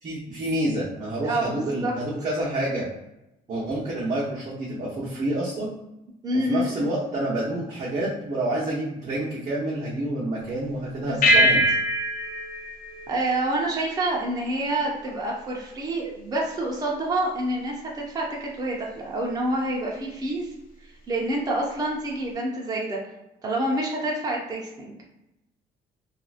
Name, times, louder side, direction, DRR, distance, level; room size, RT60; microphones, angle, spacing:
voice 1, 0.0-2.9 3.5-5.7 6.4-11.6, right 1 dB, 40° right, -8 dB, 0.9 m, -28 dB
voice 2, 1.2-1.9 6.2-6.9 11.1-11.4 13.1-20.5 21.1-23.0 23.4-25.0, right 1 dB, 20° right, -2 dB, 0.5 m, -27 dB
sound 1, 11.2-14.0, equal, 55° left, 0.6 m, -23 dB
2.8 x 2.5 x 2.4 m, 0.91 s
cardioid pair, 110°, 17 cm